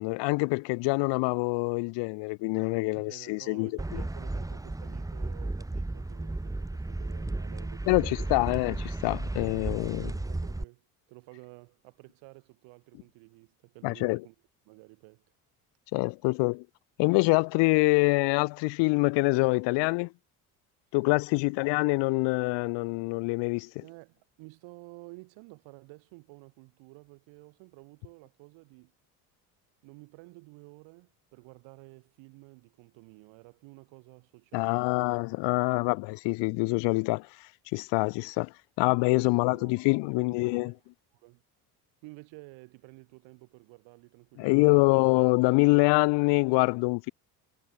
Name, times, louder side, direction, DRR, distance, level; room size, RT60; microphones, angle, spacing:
voice 1, 0.0-4.0 7.9-10.1 13.8-14.2 15.9-16.6 17.0-20.1 20.9-23.8 34.5-37.3 37.7-40.7 44.4-47.1, left 27 dB, 65° left, 0.6 m, -25 dB
voice 2, 2.9-8.3 9.8-14.3 14.6-15.2 21.3-21.4 23.8-28.9 29.8-35.1 35.5-36.0 39.2-39.8 40.1-40.7 41.2-41.4 42.0-44.9, right 26 dB, 75° right, 4.5 m, -52 dB
sound 1, 3.8-10.6, right 2 dB, 5° right, 1.0 m, -34 dB
hypercardioid pair, 65°, 47 cm